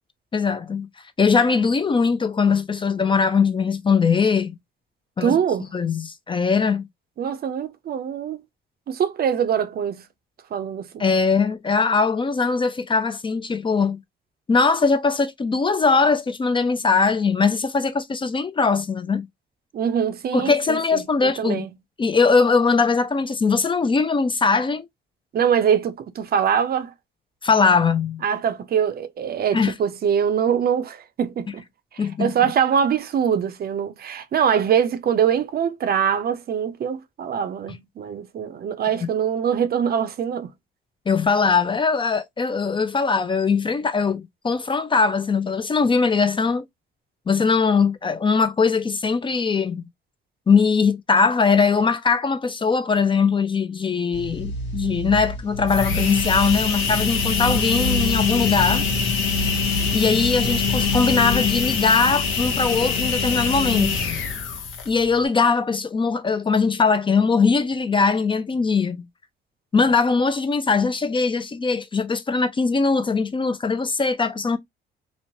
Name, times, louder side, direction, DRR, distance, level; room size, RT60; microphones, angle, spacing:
voice 1, 0.3-0.9 1.2-4.6 5.2-6.8 11.0-14.0 14.5-19.3 20.3-21.7 22.0-24.9 27.4-28.2 29.5-29.7 32.0-32.3 41.1-46.6 47.3-49.9 50.5-58.8 59.9-64.0 64.9-69.1 69.7-74.6, left 4 dB, 25° left, 0.4 m, -21 dB
voice 2, 5.2-5.7 7.2-8.4 8.9-10.1 10.5-11.0 19.7-21.7 25.3-26.9 28.2-31.6 31.9-40.5, right 8 dB, 50° right, 0.5 m, -23 dB
sound 1, 54.1-61.4, right 2 dB, 65° left, 1.2 m, -30 dB
sound 2, 55.6-65.0, left 6 dB, 80° left, 0.7 m, -24 dB
3.0 x 2.0 x 2.6 m
cardioid pair, 90°, 20 cm